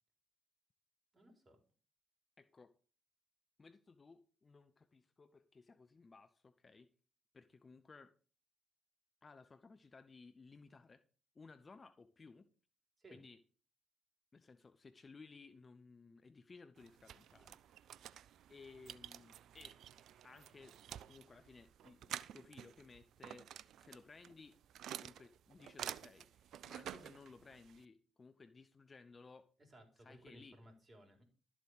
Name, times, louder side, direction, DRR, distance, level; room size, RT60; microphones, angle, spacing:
voice 1, 1.1-1.6 13.0-13.2 29.7-31.2, right 1 dB, 30° right, 3 dB, 4.3 m, -60 dB
voice 2, 2.4-2.7 3.6-6.9 7.3-8.1 9.2-11.0 11.3-12.5 13.1-13.4 14.3-18.1 18.5-19.8 20.2-20.8 21.1-23.5 23.8-24.6 25.0-29.5 30.0-30.6, left 4 dB, 30° left, 11 dB, 0.9 m, -59 dB
sound 1, 16.8-27.8, right 10 dB, 55° right, 0.4 m, -51 dB
12.5 x 7.3 x 5.0 m, 0.38 s
figure-of-eight pair, 45°, 0 cm